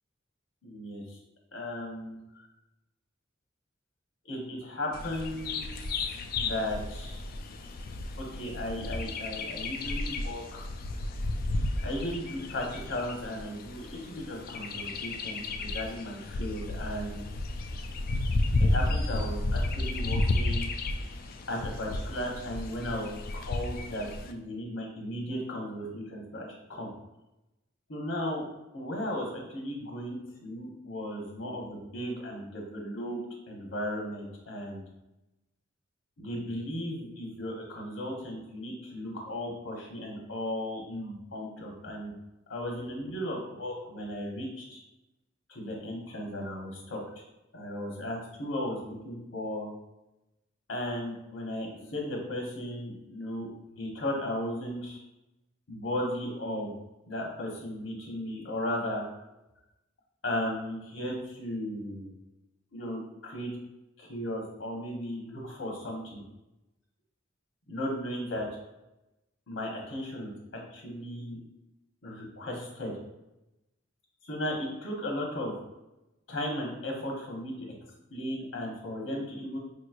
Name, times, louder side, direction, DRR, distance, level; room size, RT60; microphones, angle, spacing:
voice 1, 0.6-1.2 1.5-2.5 4.2-7.2 8.2-10.4 11.8-17.3 18.6-20.7 21.5-26.9 27.9-28.4 28.7-30.2 30.4-33.2 33.5-34.8 36.2-42.1 42.5-44.8 45.5-47.0 47.5-49.7 50.7-53.5 53.8-55.0 55.7-56.7 57.1-59.0 60.2-62.1 62.7-63.5 64.0-66.2 67.7-68.5 69.5-70.3 70.7-71.4 72.0-72.9 74.2-75.5 76.3-77.5 78.1-79.6, left 1 dB, 70° left, -1 dB, 1.1 m, -36 dB
Bird vocalization bird call bird song, 4.9-24.3, left 2 dB, 45° left, 0.3 m, -32 dB
5.0 x 3.1 x 2.4 m, 0.94 s
head